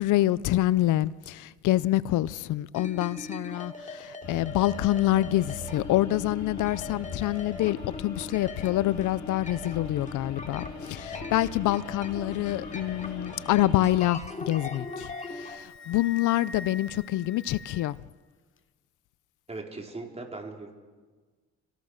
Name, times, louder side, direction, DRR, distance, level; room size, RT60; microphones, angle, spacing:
voice 1, 0.0-18.0, left 15 dB, 80° left, 0.6 m, -26 dB
sound 1, 2.7-15.6, left 2 dB, 25° left, 2.8 m, -40 dB
sound 2, 4.2-14.0, left 4 dB, 65° left, 3.1 m, -43 dB
Wind instrument woodwind instrument, 14.2-18.1, left 3 dB, 45° left, 1.2 m, -45 dB
voice 2, 19.5-20.8, right 3 dB, 20° right, 4.3 m, -39 dB
28.5 x 17.0 x 6.5 m
cardioid pair, 90°, 30 cm